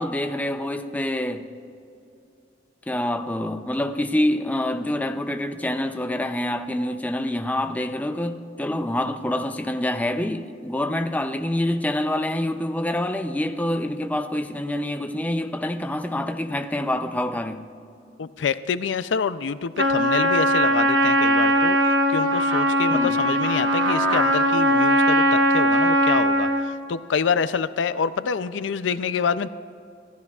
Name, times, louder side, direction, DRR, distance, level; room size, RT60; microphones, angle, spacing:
voice 1, 0.0-1.4 2.9-17.6 22.9-23.2, left 1 dB, 10° left, 0.5 m, -26 dB
voice 2, 18.2-29.5, left 6 dB, 90° left, 0.5 m, -27 dB
Trumpet, 19.8-26.7, equal, 80° right, 1.0 m, -20 dB
26.0 x 14.5 x 2.4 m
head